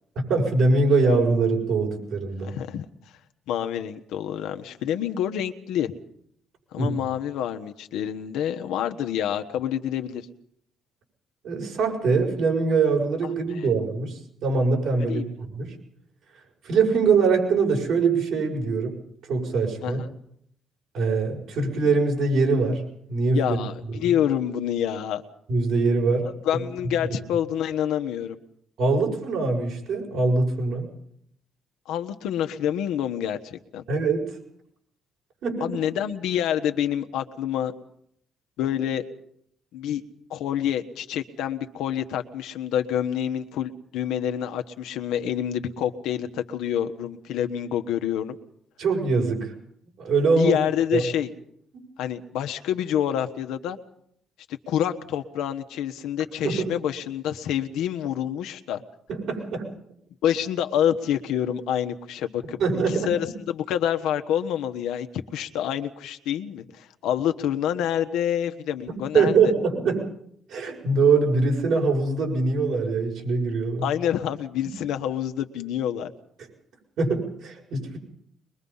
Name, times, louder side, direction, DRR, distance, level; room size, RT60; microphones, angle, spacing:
voice 1, 0.1-2.5 6.8-6.9 11.4-15.2 15.6-15.7 16.6-18.9 19.3-20.0 20.9-22.8 23.1-23.6 24.0-24.1 25.5-26.3 27.0-27.1 28.8-30.9 33.9-34.4 35.4-35.8 48.8-49.5 50.0-50.6 50.9-51.0 56.4-56.6 59.1-59.7 62.6-63.1 69.1-70.1 70.5-73.9 77.0-78.0, right 4 dB, 75° right, 0 dB, 6.6 m, -23 dB
voice 2, 2.4-2.8 3.5-5.9 6.7-10.3 15.1-15.2 19.8-20.1 23.3-25.2 26.4-28.4 31.9-33.8 35.6-37.7 38.6-39.0 39.7-40.0 40.3-48.4 50.3-51.3 52.0-53.8 54.5-58.8 60.2-69.4 73.8-76.1, left 10 dB, 85° left, 7 dB, 1.3 m, -27 dB
22.5 x 22.5 x 5.6 m, 0.70 s
cardioid pair, 90°, 0 cm